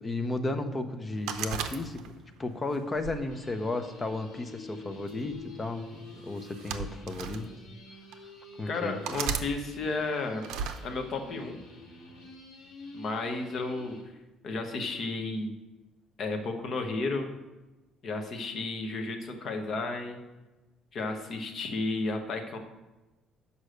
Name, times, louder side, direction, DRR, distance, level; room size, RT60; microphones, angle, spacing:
voice 1, 0.0-2.0 2.4-7.5 8.6-9.0, left 2 dB, 15° left, 7 dB, 0.6 m, -34 dB
sound 1, 1.3-2.3 3.0-4.1 5.1-5.4 6.4-7.4 8.1-8.2 9.0-9.5 10.4-10.8, right 7 dB, 75° right, 0.6 m, -35 dB
sound 2, 3.3-14.0, left 2 dB, 55° left, 2.4 m, -49 dB
voice 2, 8.7-10.4 10.8-11.6 12.9-14.0 14.4-15.5 16.2-17.3 18.0-20.2 20.9-22.6, left 3 dB, 35° left, 4 dB, 0.9 m, -33 dB
6.6 x 5.5 x 6.3 m, 1.1 s
cardioid pair, 175°, 0 cm